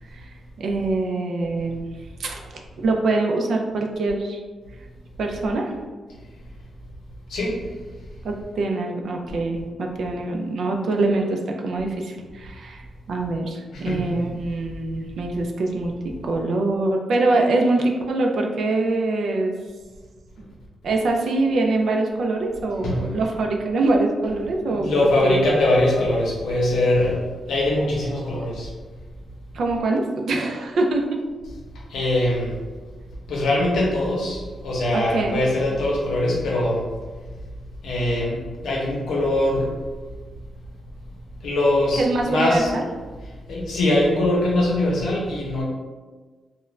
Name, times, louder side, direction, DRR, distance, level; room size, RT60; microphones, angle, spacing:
voice 1, 0.1-1.9 2.2-2.5 2.8-4.4 5.2-5.7 8.2-12.8 13.1-19.5 20.4-20.5 20.8-25.4 29.5-31.2 34.9-35.4 42.0-42.8, right 2 dB, 60° right, 2 dB, 0.3 m, -24 dB
voice 2, 7.3-7.6 13.7-14.2 22.8-23.1 24.8-28.7 31.9-32.6 33.3-36.9 37.8-39.7 41.4-42.7 43.5-45.6, left 1 dB, 80° left, -4 dB, 0.7 m, -22 dB
2.4 x 2.1 x 3.1 m, 1.4 s
wide cardioid pair, 175°, 0 cm